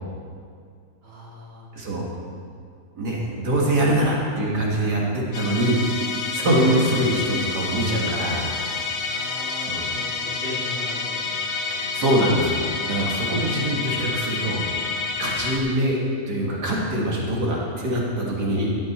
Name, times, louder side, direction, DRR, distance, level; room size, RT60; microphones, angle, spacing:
voice 1, 1.0-1.7 9.0-11.9, left 1 dB, 40° right, -4 dB, 2.2 m, -38 dB
voice 2, 1.7-2.1 3.0-5.8 6.1-8.5 9.6-9.8 11.7-14.6 15.2-16.0 16.3-18.8, right 1 dB, 80° right, -3 dB, 2.3 m, -23 dB
Musical instrument, 5.3-15.6, left 4 dB, 45° left, 0.9 m, -28 dB
13.5 x 8.8 x 4.3 m, 2.2 s
omnidirectional pair, 1.7 m